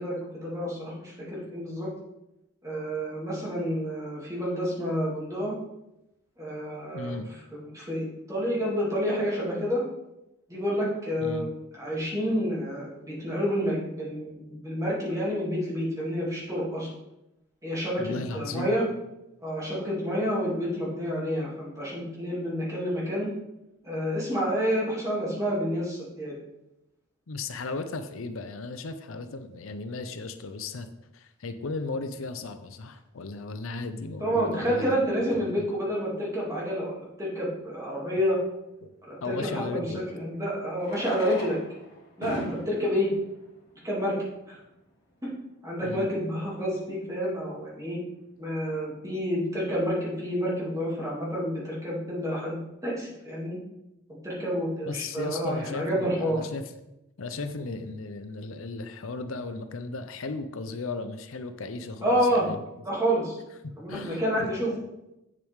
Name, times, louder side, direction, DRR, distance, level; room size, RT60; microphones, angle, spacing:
voice 1, 0.0-1.9 2.6-5.5 6.4-7.2 7.5-9.8 10.5-11.5 11.8-16.9 17.6-18.8 19.4-23.3 23.8-26.4 34.2-38.4 39.1-41.6 42.2-43.1 43.8-44.2 44.5-44.6 45.6-48.0 48.4-52.6 52.8-53.6 54.2-56.4 62.0-62.5 62.8-63.4 63.8-64.7, equal, 15° right, -6 dB, 2.6 m, -29 dB
voice 2, 6.9-7.3 11.2-11.5 18.0-18.7 22.4-22.5 24.1-24.2 27.3-30.9 31.1-35.0 35.3-35.6 38.8-38.9 39.2-40.0 45.8-46.1 54.8-56.7 57.2-62.6 63.6-64.9, left 3 dB, 75° left, 9 dB, 0.6 m, -36 dB
Fireworks, 37.2-37.3 39.6-39.7 40.7-44.5 45.2-45.3 45.5-45.6 45.8-45.9 46.5-46.7, equal, 50° left, 2.3 m, -40 dB
7.9 x 7.5 x 3.6 m, 0.90 s
head